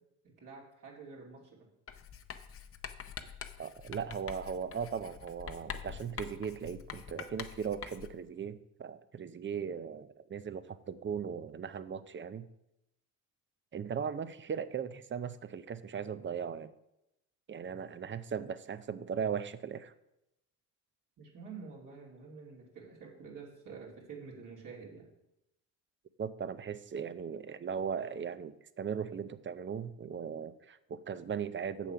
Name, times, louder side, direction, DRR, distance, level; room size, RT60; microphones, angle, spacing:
voice 1, 0.2-1.7 21.2-25.1, right 5 dB, 60° right, -3 dB, 2.8 m, -48 dB
Writing, 1.9-8.3, left 7 dB, 40° left, 0.7 m, -45 dB
voice 2, 3.6-12.5 13.7-16.7 17.5-19.9 26.2-31.9, right 7 dB, 35° right, 13 dB, 0.6 m, -38 dB
7.4 x 7.1 x 5.7 m, 0.87 s
cardioid pair, 90°, 35 cm